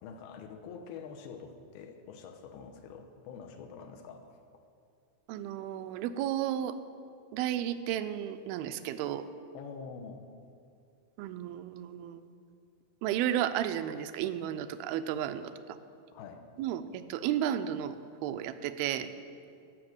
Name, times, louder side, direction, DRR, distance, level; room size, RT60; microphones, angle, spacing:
voice 1, 0.0-4.4 9.5-10.2 16.1-16.4, left 6 dB, 90° left, 5 dB, 2.8 m, -46 dB
voice 2, 5.3-6.8 7.3-9.3 11.2-12.3 13.0-15.5 16.6-18.0 18.2-19.1, right 11 dB, 85° right, 10 dB, 2.5 m, -33 dB
15.5 x 5.8 x 7.9 m, 2.5 s
omnidirectional pair, 4.3 m